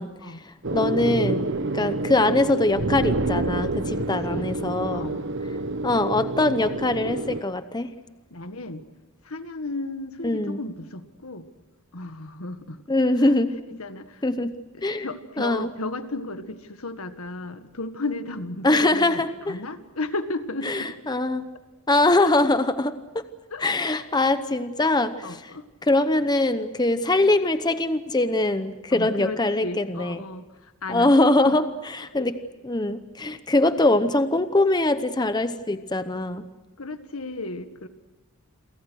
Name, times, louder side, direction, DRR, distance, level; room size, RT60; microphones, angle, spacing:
voice 1, 0.0-1.5 1.7-5.1 5.8-7.9 10.2-10.6 12.9-13.5 14.2-14.5 14.8-15.1 15.4-15.7 18.6-19.6 20.7-21.5 21.9-23.2 23.6-25.5 25.8-30.2 30.9-31.6 32.0-32.3 32.6-36.4, left 2 dB, 20° left, 11 dB, 0.9 m, -22 dB
sound 1, 0.6-7.4, right 2 dB, 55° right, 1.1 m, -28 dB
voice 2, 4.0-4.5 4.9-5.3 8.3-8.8 9.2-11.4 11.9-12.8 13.2-13.4 13.7-14.2 14.7-20.9 22.2-22.3 23.5-23.7 25.2-25.7 28.9-31.1 31.4-31.7 32.2-32.3 36.8-37.9, left 2 dB, 80° left, 9 dB, 1.8 m, -34 dB
30.0 x 23.5 x 6.4 m, 1.1 s
head